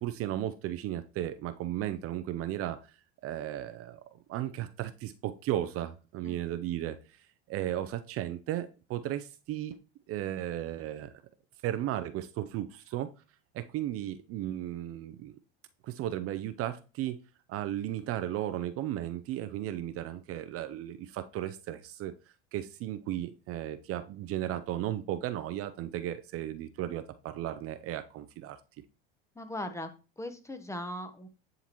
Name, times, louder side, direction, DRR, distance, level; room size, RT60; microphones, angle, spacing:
voice 1, 0.0-2.8 3.2-4.0 4.3-7.0 7.5-9.7 10.1-11.1 11.6-13.1 13.5-15.4 15.8-17.2 17.5-22.1 22.5-28.6, right 12 dB, 50° right, 11 dB, 0.5 m, -35 dB
voice 2, 29.4-29.9 30.2-31.3, left 1 dB, 10° left, 9 dB, 0.9 m, -38 dB
10.0 x 3.9 x 3.0 m, 0.34 s
supercardioid pair, 90°, 29 cm